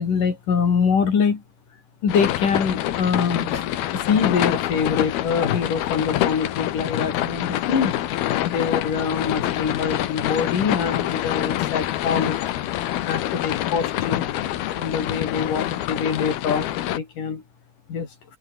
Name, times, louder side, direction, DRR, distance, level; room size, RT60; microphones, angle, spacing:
voice 1, 0.0-1.4 2.0-8.0 8.4-12.4 13.0-14.3 14.8-16.7 16.9-17.4 17.9-18.1, left 6 dB, 60° left, 5.0 m, -24 dB
sound 1, 2.1-17.0, left 13 dB, 85° left, 3.4 m, -26 dB
open air
omnidirectional pair, 4.3 m